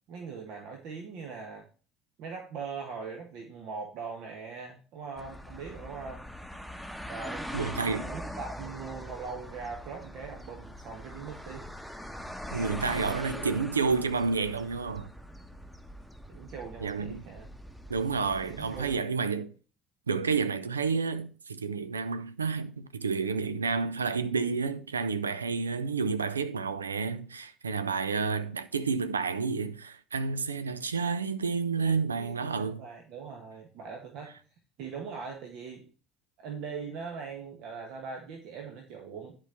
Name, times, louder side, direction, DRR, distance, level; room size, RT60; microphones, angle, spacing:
voice 1, 0.1-1.7 2.2-6.2 7.1-11.7 12.5-12.7 12.9-13.6 16.3-17.5 18.5-19.1 31.8-34.3 34.8-35.9 36.4-39.3, right 5 dB, 55° right, 1.4 m, -41 dB
sound 1, 5.2-19.0, equal, ahead, 1.1 m, -42 dB
voice 2, 7.5-8.1 12.5-15.1 16.8-17.2 17.9-19.5 20.1-32.8, right 5 dB, 80° right, 0.5 m, -30 dB
11.0 x 4.7 x 5.6 m
figure-of-eight pair, 60°, 0 cm